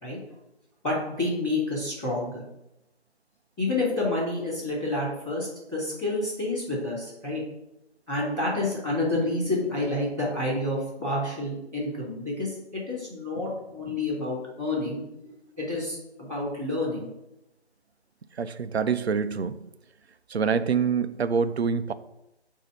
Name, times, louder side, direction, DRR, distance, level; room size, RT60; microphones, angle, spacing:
voice 1, 0.8-2.4 3.6-7.4 8.1-17.1, left 2 dB, 5° left, -18 dB, 1.5 m, -29 dB
voice 2, 18.4-19.6 20.3-21.9, right 6 dB, 70° right, 12 dB, 0.6 m, -26 dB
8.3 x 2.8 x 5.1 m, 0.89 s
hypercardioid pair, 180°, 33 cm